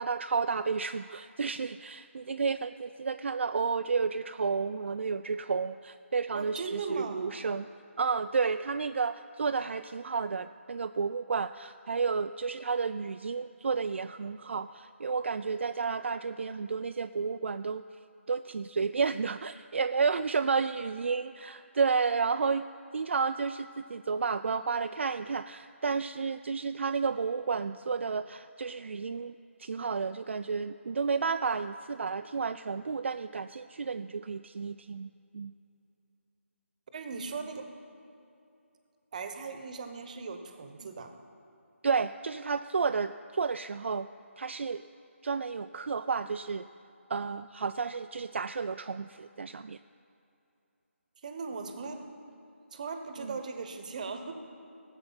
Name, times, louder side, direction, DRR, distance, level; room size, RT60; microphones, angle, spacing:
voice 1, 0.0-7.7 8.0-17.8 18.3-22.7 22.9-29.3 29.6-35.5 41.8-44.1 44.4-44.8 45.2-46.7 47.1-49.8 53.2-53.3, right 5 dB, 60° right, 10 dB, 0.3 m, -31 dB
voice 2, 6.3-7.3 36.9-37.7 39.1-41.2 51.2-52.1 52.7-54.3, right 4 dB, 35° right, 7 dB, 0.9 m, -38 dB
18.0 x 7.8 x 5.6 m, 2.7 s
figure-of-eight pair, 165°, 7 cm